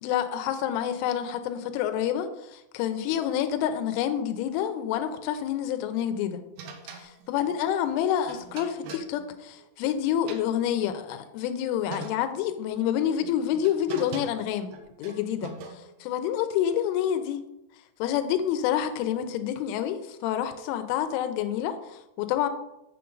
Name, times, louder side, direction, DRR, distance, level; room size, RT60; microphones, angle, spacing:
voice 1, 0.0-6.4 7.0-14.7 15.0-17.4 18.0-22.5, left 10 dB, 80° left, 9 dB, 3.0 m, -28 dB
sound 1, 6.6-9.9 10.1-11.2 11.6-11.7 11.9-12.5 13.2-16.0, right 4 dB, 85° right, 2.3 m, -43 dB
8.0 x 7.3 x 3.9 m, 0.89 s
omnidirectional pair, 5.9 m